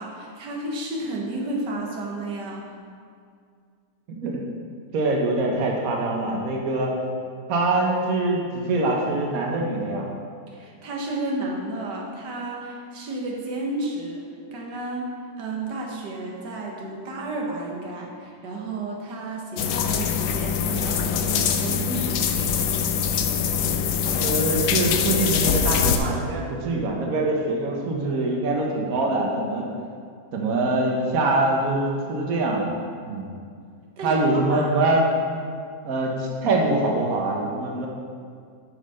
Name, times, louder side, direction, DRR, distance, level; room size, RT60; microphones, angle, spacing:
voice 1, 0.0-2.7 10.5-14.2 14.5-22.3 34.0-34.7, right 2 dB, 90° right, -1 dB, 1.8 m, -32 dB
voice 2, 4.1-4.4 4.9-6.9 7.5-10.0 24.2-29.6 30.3-32.7 33.1-33.3 34.0-35.1 35.8-37.9, right 2 dB, 60° right, -1 dB, 1.5 m, -24 dB
sound 1, 19.6-26.0, left 7 dB, 80° left, 1.3 m, -23 dB
8.4 x 5.8 x 5.6 m, 2.2 s
omnidirectional pair, 1.8 m